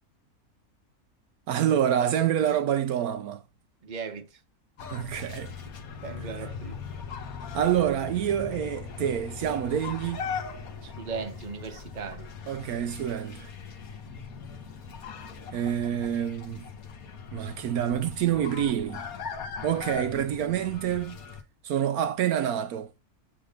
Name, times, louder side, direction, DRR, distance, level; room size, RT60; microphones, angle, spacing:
voice 1, 1.5-3.4 4.9-5.5 7.5-10.2 12.5-13.5 15.5-16.7 17.3-19.0 19.6-21.2 21.6-22.9, right 10 dB, 75° right, 1.1 m, -27 dB
voice 2, 3.8-4.3 6.0-6.7 10.8-12.3, right 5 dB, 35° right, 1.0 m, -37 dB
sound 1, 4.8-21.4, left 6 dB, 70° left, 1.6 m, -40 dB
8.5 x 3.7 x 5.1 m
omnidirectional pair, 1.6 m